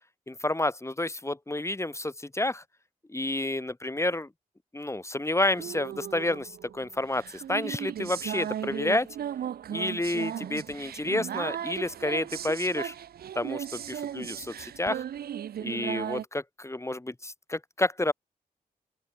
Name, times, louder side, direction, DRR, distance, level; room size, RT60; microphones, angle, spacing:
voice 1, 0.3-2.6 3.1-4.3 4.7-9.1 9.7-12.9 13.3-15.0 15.6-18.1, left 2 dB, 20° left, 2.9 m, -30 dB
sound 1, 5.5-16.2, right 10 dB, 90° right, 3.5 m, -36 dB
open air
cardioid pair, 55°, 15 cm